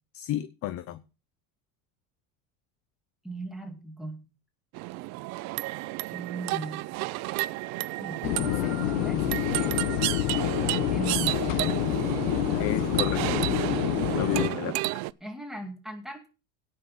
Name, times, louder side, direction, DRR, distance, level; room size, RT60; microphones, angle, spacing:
voice 1, 0.1-1.0 12.6-13.7 14.2-14.8, left 13 dB, 40° left, 13 dB, 0.7 m, -32 dB
voice 2, 3.2-4.3 6.1-6.8 8.0-9.8 10.9-11.5 15.2-16.3, right 1 dB, ahead, 4 dB, 2.4 m, -38 dB
sound 1, 4.7-15.1, right 20 dB, 50° right, 0.5 m, -32 dB
sound 2, 8.2-14.5, left 15 dB, 75° left, 1.2 m, -27 dB
17.0 x 6.4 x 5.6 m, 0.32 s
cardioid pair, 155°, 37 cm